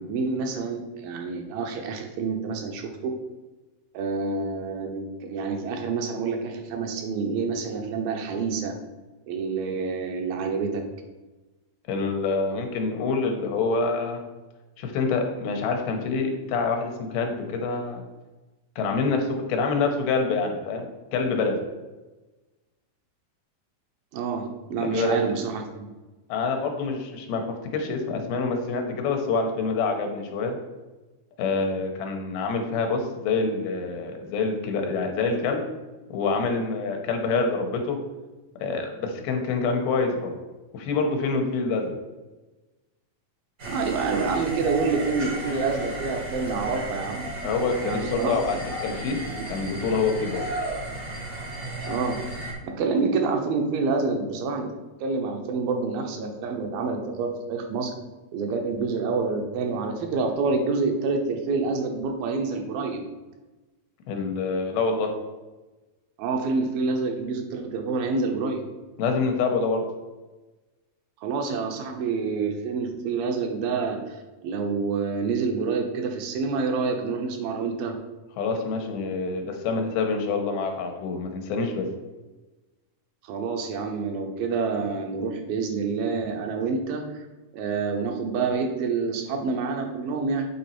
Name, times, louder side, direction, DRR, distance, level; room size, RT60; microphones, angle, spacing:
voice 1, 0.0-3.1 3.9-8.8 9.3-10.8 24.1-25.6 43.7-47.3 47.8-48.3 49.3-49.4 51.8-54.7 55.0-57.9 58.3-63.0 66.2-68.6 71.2-74.2 74.4-78.0 83.3-87.2 87.5-90.5, right 4 dB, 75° right, 3 dB, 2.5 m, -27 dB
voice 2, 11.9-14.2 14.8-18.0 18.8-21.6 24.8-25.3 26.3-30.6 31.4-35.7 36.1-38.0 38.6-40.4 40.7-41.9 47.4-49.2 49.5-50.5 64.1-65.1 69.0-69.8 78.4-81.9, left 4 dB, 85° left, 4 dB, 2.8 m, -26 dB
sound 1, 43.6-52.5, right 1 dB, 55° right, 0.9 m, -34 dB
8.4 x 4.1 x 4.4 m, 1.2 s
omnidirectional pair, 4.4 m